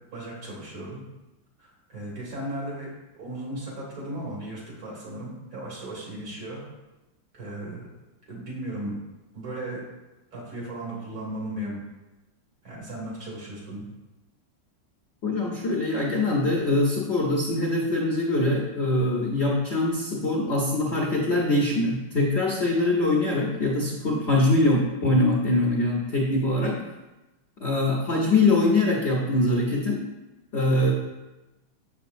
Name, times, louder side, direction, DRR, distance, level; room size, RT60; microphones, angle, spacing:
voice 1, 0.1-1.0 1.6-6.6 7.3-7.9 8.3-9.0 9.3-9.8 10.3-11.8 12.6-13.9 29.4-29.5, right 1 dB, 75° right, -6 dB, 3.5 m, -36 dB
voice 2, 15.2-26.8 27.6-30.0 30.5-30.9, left 2 dB, 60° left, -2 dB, 0.7 m, -23 dB
7.1 x 6.9 x 2.6 m, 1.0 s
omnidirectional pair, 2.2 m